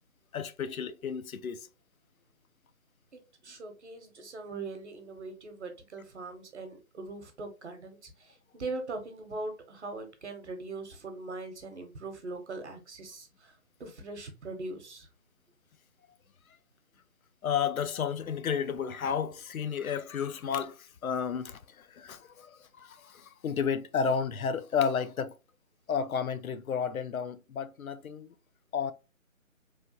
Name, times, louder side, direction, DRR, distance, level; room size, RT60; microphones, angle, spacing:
voice 1, 0.3-1.6 17.4-25.3 25.9-28.3 28.7-28.9, left 7 dB, 85° left, 0.5 m, -32 dB
voice 2, 3.4-15.1, right 3 dB, 55° right, 0.8 m, -41 dB
3.1 x 2.2 x 2.7 m
figure-of-eight pair, 155°, 41 cm